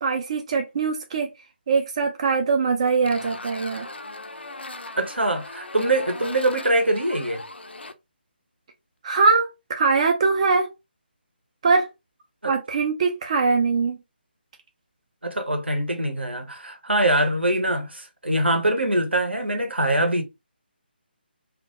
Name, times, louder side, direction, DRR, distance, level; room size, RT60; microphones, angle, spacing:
voice 1, 0.0-1.3 1.7-3.9 9.0-10.7 11.6-11.9 12.4-14.0, right 4 dB, 35° right, 0.3 m, -22 dB
sound 1, 3.1-7.9, left 2 dB, 80° left, 0.4 m, -38 dB
voice 2, 5.0-7.4 12.4-12.5 15.2-20.2, right 1 dB, 80° right, 0.7 m, -23 dB
2.1 x 2.1 x 2.8 m
figure-of-eight pair, 150°, 6 cm